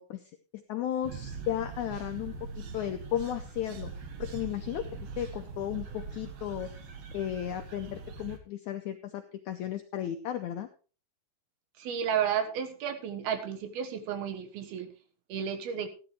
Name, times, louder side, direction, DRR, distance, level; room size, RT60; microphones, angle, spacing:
voice 1, 0.0-4.9 5.2-6.7 7.1-10.7, left 11 dB, 80° left, 6 dB, 1.7 m, -35 dB
sound 1, 1.0-8.4, right 4 dB, 60° right, 2.0 m, -42 dB
voice 2, 11.8-14.9 15.3-15.9, right 8 dB, 85° right, 7 dB, 3.2 m, -32 dB
15.5 x 10.5 x 3.2 m, 0.36 s
omnidirectional pair, 4.3 m